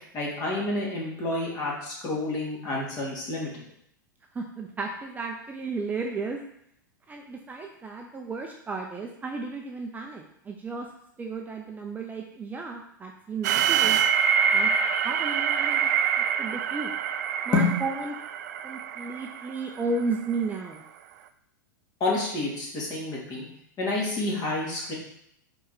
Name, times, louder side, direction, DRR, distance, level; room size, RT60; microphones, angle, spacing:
voice 1, 0.1-3.6 17.5-17.7 22.0-23.4 23.8-24.9, left 2 dB, 35° left, -3 dB, 2.5 m, -28 dB
voice 2, 4.3-6.4 7.1-10.9 11.2-14.0 14.5-14.7 15.0-15.9 16.4-16.9 17.5-18.1 18.6-20.8, right 3 dB, 15° right, 2 dB, 0.6 m, -33 dB
sound 1, 13.4-20.4, right 7 dB, 55° right, 0.5 m, -25 dB
5.0 x 4.8 x 4.1 m, 0.71 s
figure-of-eight pair, 95°, 11 cm